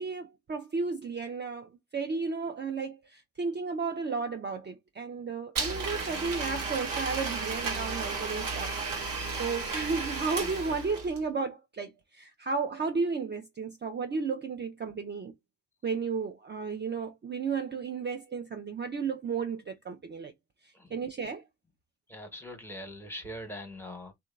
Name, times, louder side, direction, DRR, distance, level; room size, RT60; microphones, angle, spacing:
voice 1, 0.0-9.1 9.4-15.3 15.8-20.3 20.6-21.4, right 4 dB, 30° right, 0.5 m, -33 dB
Domestic sounds home sounds, 5.6-11.2, right 4 dB, 70° right, 1.0 m, -33 dB
voice 2, 22.1-24.1, equal, 5° left, 1.1 m, -42 dB
2.8 x 2.3 x 2.4 m
hypercardioid pair, 45°, 35 cm